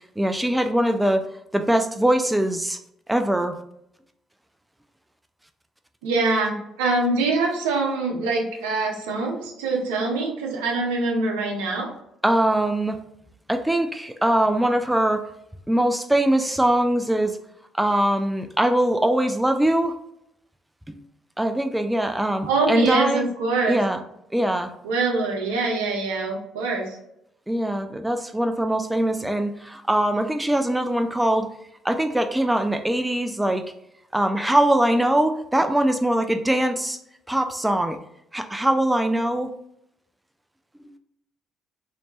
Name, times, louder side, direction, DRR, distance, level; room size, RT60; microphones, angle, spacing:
voice 1, 0.2-1.2 1.5-2.8 3.1-3.6 12.2-13.0 13.5-15.3 15.7-17.4 17.8-20.0 20.9-21.0 21.4-23.2 23.7-24.0 24.3-24.7 27.5-31.5 31.8-33.6 34.1-37.0 37.3-38.0 38.3-39.5 40.8-40.9, right 1 dB, 10° right, 6 dB, 0.4 m, -22 dB
voice 2, 6.0-11.9 22.5-23.8 24.8-27.0, right 3 dB, 80° right, 0 dB, 0.6 m, -24 dB
3.2 x 2.7 x 2.9 m, 0.77 s
hypercardioid pair, 50°, 0 cm